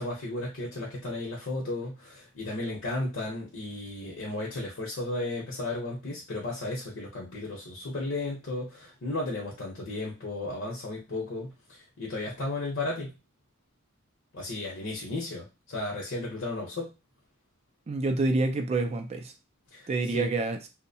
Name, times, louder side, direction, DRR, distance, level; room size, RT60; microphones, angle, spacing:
voice 1, 0.0-13.1 14.3-16.9 19.7-20.3, left 2 dB, 60° left, -4 dB, 0.8 m, -34 dB
voice 2, 17.9-19.3 19.9-20.6, right 2 dB, 30° right, 6 dB, 0.3 m, -27 dB
2.7 x 2.0 x 2.7 m, 0.28 s
head